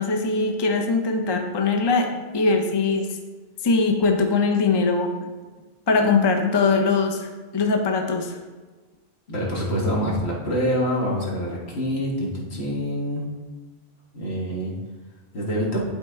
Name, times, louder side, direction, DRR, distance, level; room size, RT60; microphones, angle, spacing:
voice 1, 0.0-2.1 2.3-3.1 3.6-5.1 5.9-8.4, left 4 dB, 30° left, 3 dB, 0.6 m, -21 dB
voice 2, 9.3-13.2 14.1-14.7 15.3-15.8, equal, 75° left, -3 dB, 1.9 m, -26 dB
11.0 x 4.2 x 3.6 m, 1.3 s
omnidirectional pair, 1.1 m